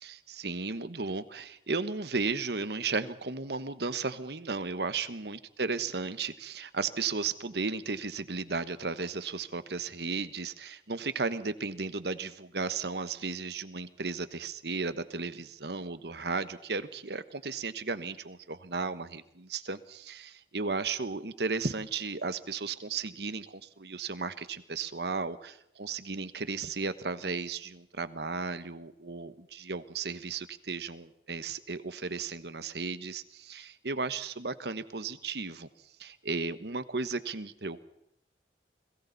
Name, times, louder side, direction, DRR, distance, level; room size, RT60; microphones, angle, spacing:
voice 1, 0.0-35.7 36.0-37.8, right 4 dB, 70° right, 12 dB, 1.2 m, -35 dB
30.0 x 21.5 x 4.1 m, 0.76 s
head